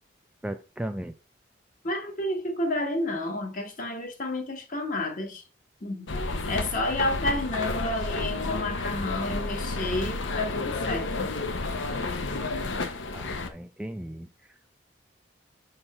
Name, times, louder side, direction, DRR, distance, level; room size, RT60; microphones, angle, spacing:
voice 1, 0.4-1.1 13.1-14.7, right 1 dB, 5° right, 0.3 m, -37 dB
voice 2, 1.8-5.4 5.8-11.3, left 1 dB, 45° left, 1.5 m, -30 dB
sound 1, 6.1-13.5, left 3 dB, 80° left, 0.9 m, -31 dB
6.5 x 4.5 x 4.3 m
head